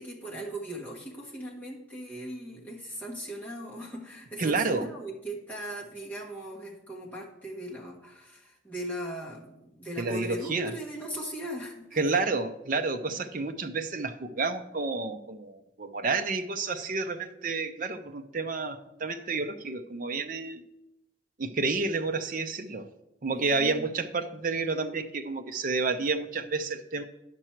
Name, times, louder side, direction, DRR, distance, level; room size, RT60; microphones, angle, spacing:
voice 1, 0.0-12.0 13.1-13.3 23.3-23.9, right 1 dB, 10° left, -4 dB, 1.4 m, -39 dB
voice 2, 4.4-4.9 10.0-10.7 12.0-20.6 21.4-22.9 23.2-27.0, right 3 dB, 45° right, 7 dB, 0.5 m, -30 dB
9.9 x 6.1 x 4.5 m, 0.93 s
head